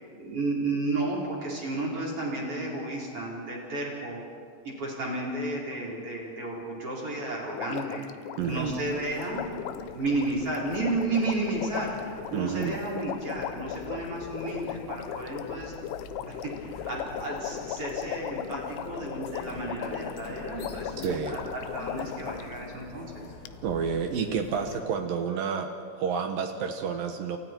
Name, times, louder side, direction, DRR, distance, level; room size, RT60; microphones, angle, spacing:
voice 1, 0.2-4.2 4.6-8.0 8.4-9.5 9.9-15.7 16.3-20.9 21.3-23.3, right 2 dB, 30° right, -3 dB, 4.7 m, -32 dB
Water, 7.5-22.5 23.5-23.6, left 11 dB, 80° left, 3.2 m, -38 dB
sound 1, 8.4-24.8, left 4 dB, 65° left, 4.2 m, -45 dB
voice 2, 8.4-8.8 12.3-12.8 21.0-21.4 23.6-27.4, right 6 dB, 70° right, 5 dB, 2.3 m, -30 dB
29.5 x 29.0 x 4.6 m, 2.2 s
omnidirectional pair, 5.5 m